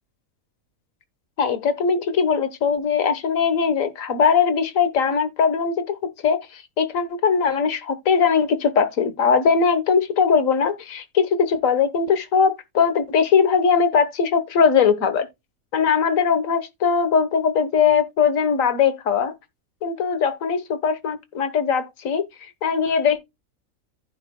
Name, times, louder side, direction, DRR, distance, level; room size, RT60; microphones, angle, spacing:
voice 1, 1.4-15.3 15.7-19.3 19.8-22.2 22.6-23.2, left 6 dB, 65° left, 1.6 m, -20 dB
14.5 x 5.3 x 2.2 m
omnidirectional pair, 1.5 m